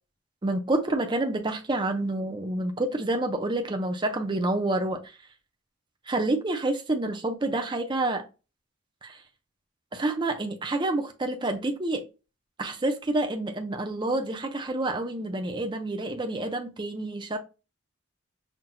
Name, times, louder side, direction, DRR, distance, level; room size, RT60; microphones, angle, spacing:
voice 1, 0.4-5.0 6.1-8.2 9.0-9.2 9.9-12.1 12.6-17.4, right 2 dB, 20° right, 0.5 m, -28 dB
5.8 x 2.6 x 2.2 m
head